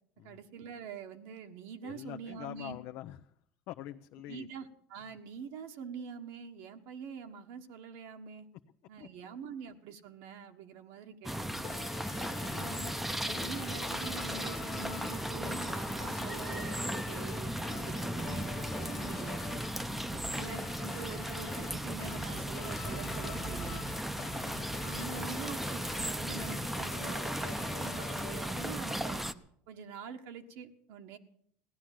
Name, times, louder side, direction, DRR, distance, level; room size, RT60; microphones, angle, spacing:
voice 1, 0.2-2.8 4.3-8.5 8.9-11.7 12.3-13.0 13.2-19.4 20.4-23.8 24.8-29.3 29.7-31.2, right 7 dB, 75° right, 4 dB, 1.5 m, -45 dB
voice 2, 1.8-3.2 3.7-4.5 9.0-9.1 12.1-12.7 19.8-20.3 24.2-25.6, left 13 dB, 60° left, 5 dB, 0.7 m, -46 dB
sound 1, 11.2-29.3, right 1 dB, 5° right, 0.7 m, -36 dB
sound 2, 11.6-29.1, left 9 dB, 45° left, 1.0 m, -47 dB
16.5 x 11.5 x 7.6 m, 0.67 s
supercardioid pair, 125°, 5 cm